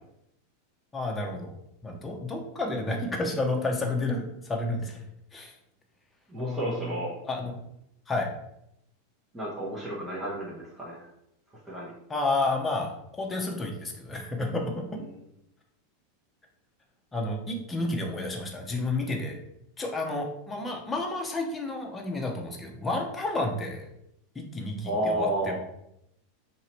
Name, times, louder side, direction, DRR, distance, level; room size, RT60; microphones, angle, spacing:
voice 1, 0.9-1.5 1.8-5.1 5.3-5.6 6.4-7.5 8.1-8.3 12.1-15.0 17.1-19.4 19.8-23.9 24.3-25.6, left 2 dB, 15° left, 1 dB, 0.9 m, -31 dB
voice 2, 6.3-7.1 9.3-11.1 11.7-11.9 24.8-25.6, right 1 dB, 10° right, -6 dB, 1.0 m, -31 dB
3.0 x 2.7 x 4.5 m, 0.79 s
hypercardioid pair, 110°, 0 cm